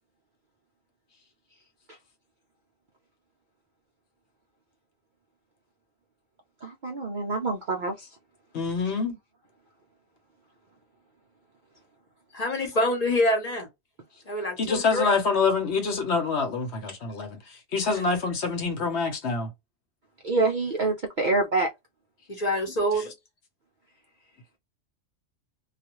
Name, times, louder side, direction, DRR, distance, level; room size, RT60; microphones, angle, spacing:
voice 1, 6.6-8.1 20.2-21.7, right 3 dB, 55° right, 0.5 m, -26 dB
voice 2, 8.5-9.2 14.6-19.5 23.0-23.1, left 4 dB, 60° left, 1.0 m, -26 dB
voice 3, 12.3-13.7 14.3-15.1 22.3-23.1, left 1 dB, 35° left, 0.8 m, -26 dB
2.4 x 2.3 x 2.9 m
omnidirectional pair, 1.3 m